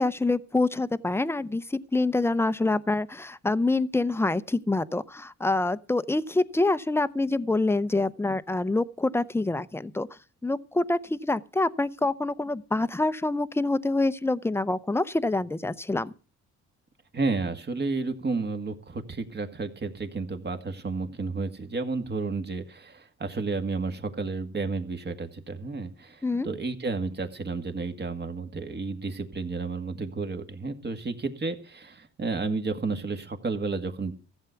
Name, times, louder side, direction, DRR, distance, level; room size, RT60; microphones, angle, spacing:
voice 1, 0.0-10.1 10.4-16.1 26.2-26.5, left 2 dB, 10° left, 0.7 m, -26 dB
voice 2, 17.1-34.1, right 3 dB, 35° right, 1.9 m, -31 dB
15.0 x 8.2 x 5.8 m
cardioid pair, 90°, 30 cm